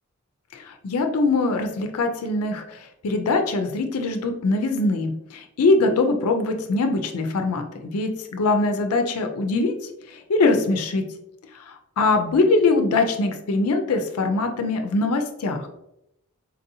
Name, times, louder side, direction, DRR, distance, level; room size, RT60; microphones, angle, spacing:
voice 1, 0.5-9.7 10.1-11.0 11.5-15.7, left 3 dB, 75° left, 5 dB, 0.4 m, -22 dB
4.1 x 2.7 x 2.6 m, 0.81 s
head